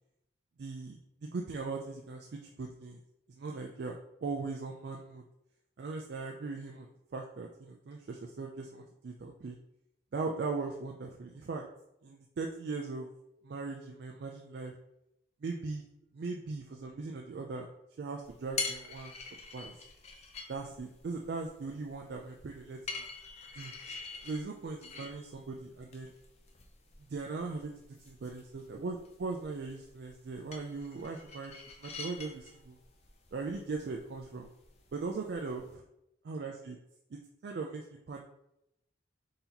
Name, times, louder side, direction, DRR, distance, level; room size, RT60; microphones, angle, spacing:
voice 1, 0.6-3.0 3.4-5.2 5.8-9.6 10.1-11.6 12.0-13.1 13.4-14.7 15.4-15.8 16.1-17.7 18.0-19.1 19.5-19.7 20.5-23.0 23.6-23.7 24.3-26.1 27.1-27.7 28.1-31.5 31.8-32.8 33.3-34.5 34.9-35.8 36.3-36.8 37.1-38.2, right 4 dB, 55° right, 1 dB, 0.4 m, -39 dB
sound 1, 18.2-35.7, left 4 dB, 35° left, 0.5 m, -46 dB
4.0 x 2.8 x 4.0 m, 0.81 s
head